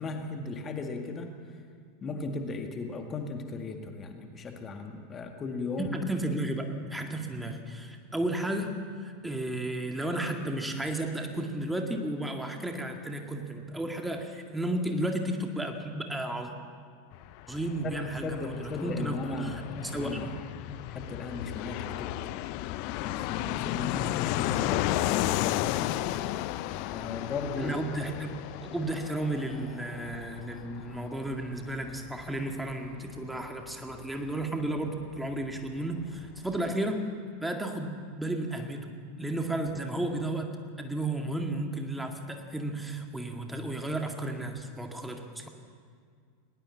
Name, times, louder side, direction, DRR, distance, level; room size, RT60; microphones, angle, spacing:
voice 1, 0.0-1.3 2.0-6.0 17.8-17.9 18.2-20.3 20.9-22.1 23.0-26.1 26.9-27.8, left 3 dB, 25° left, 4 dB, 2.0 m, -36 dB
voice 2, 5.8-8.8 9.0-16.5 17.5-20.4 27.6-37.0 37.4-38.9 39.2-45.5, right 1 dB, 5° right, 3 dB, 2.0 m, -33 dB
Fixed-wing aircraft airplane, 17.1-35.5 35.8-35.9 36.0-36.8, left 15 dB, 50° left, 0.7 m, -34 dB
20.5 x 20.0 x 7.4 m, 2.1 s
figure-of-eight pair, 85°, 0 cm